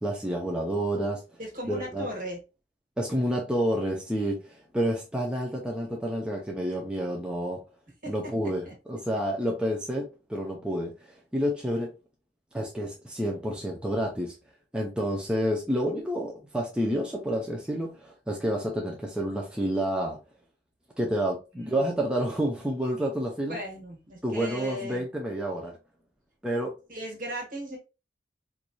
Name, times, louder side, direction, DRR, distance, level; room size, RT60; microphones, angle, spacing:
voice 1, 0.0-1.2 1.7-2.1 3.0-7.6 8.1-11.9 12.5-14.4 14.7-20.2 21.0-23.6 24.2-25.8 26.4-26.7, equal, 5° right, -2 dB, 0.5 m, -29 dB
voice 2, 1.4-2.4 8.0-8.7 21.5-21.8 23.5-25.1 26.9-27.8, right 1 dB, 45° right, 0 dB, 1.5 m, -37 dB
4.6 x 2.6 x 2.2 m, 0.29 s
head